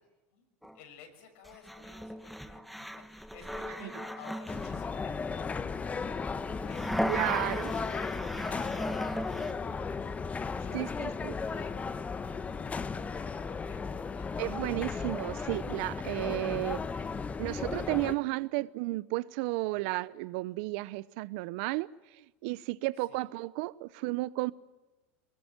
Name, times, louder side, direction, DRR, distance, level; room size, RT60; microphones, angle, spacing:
sound 1, 0.6-0.8 1.5-4.9 6.5-9.5, equal, ahead, 1.3 m, -37 dB
voice 1, 0.7-6.2 6.6-7.1 7.3-7.5 7.8-10.1 10.6-11.8 12.5-14.4 19.7-19.9 23.0-23.2, left 7 dB, 80° left, 6.2 m, -54 dB
sound 2, 4.5-18.1, left 5 dB, 20° left, 1.2 m, -35 dB
voice 2, 7.1-7.7 10.7-11.3 14.4-24.5, right 20 dB, 70° right, 0.8 m, -33 dB
23.0 x 20.0 x 9.1 m
supercardioid pair, 100°, 6 cm